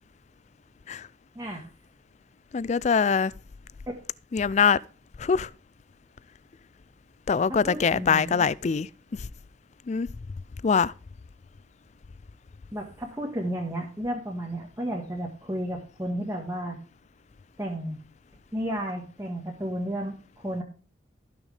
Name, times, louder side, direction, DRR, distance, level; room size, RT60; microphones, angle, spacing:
voice 1, 1.4-1.7 7.5-8.5 12.7-16.8 17.6-18.0 18.5-20.1 20.4-20.6, right 1 dB, 15° right, 1.6 m, -32 dB
voice 2, 2.5-3.3 4.3-4.8 5.2-5.5 7.3-8.9 9.9-10.1 10.6-10.9, left 6 dB, 40° left, 0.4 m, -23 dB
15.5 x 6.3 x 3.3 m
head